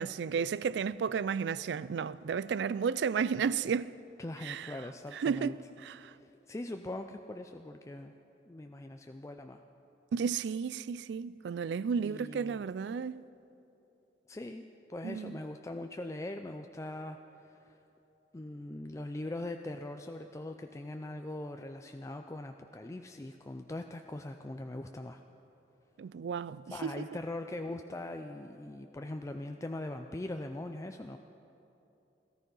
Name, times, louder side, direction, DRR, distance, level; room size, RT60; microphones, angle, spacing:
voice 1, 0.0-3.9 4.4-4.8 5.1-6.1 10.1-13.2 15.0-15.4 26.0-27.1, right 6 dB, 75° right, 0.3 m, -33 dB
voice 2, 4.2-5.6 6.2-8.1 8.5-9.6 12.0-12.7 14.3-17.8 18.3-25.2 26.7-31.2, left 1 dB, 15° left, 0.4 m, -41 dB
17.5 x 13.5 x 5.5 m
head